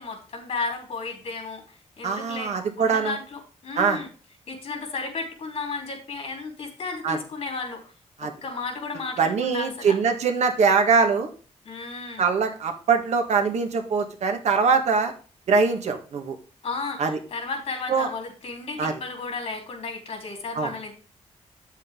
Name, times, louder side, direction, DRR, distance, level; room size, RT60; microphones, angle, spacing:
voice 1, 0.0-2.5 2.8-4.1 4.5-7.8 8.2-10.0 11.6-12.2 16.6-20.9, left 4 dB, 55° left, 2 dB, 3.7 m, -33 dB
voice 2, 2.0-3.2 3.8-4.0 7.0-7.2 8.2-8.3 9.2-11.3 12.2-15.1 15.5-16.4 17.0-17.2 17.9-18.1 18.8-18.9 20.6-20.7, right 5 dB, 70° right, 5 dB, 1.6 m, -22 dB
9.1 x 7.7 x 3.7 m, 0.38 s
wide cardioid pair, 145°, 12 cm